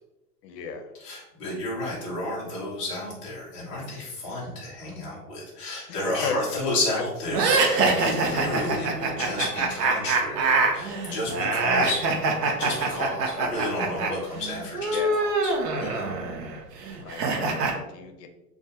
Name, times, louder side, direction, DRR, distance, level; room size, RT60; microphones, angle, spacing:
voice 1, 0.4-0.9 5.9-6.0 6.2-6.6 14.9-15.3 17.0-18.3, left 6 dB, 90° left, 6 dB, 0.6 m, -35 dB
voice 2, 1.0-12.0 12.6-15.5 15.8-16.1, left 1 dB, 20° left, -6 dB, 0.4 m, -31 dB
sound 1, 7.3-14.1 14.4-17.7, right 3 dB, 85° right, 0.6 m, -24 dB
2.2 x 2.2 x 2.7 m, 1.0 s
hypercardioid pair, 150°, 47 cm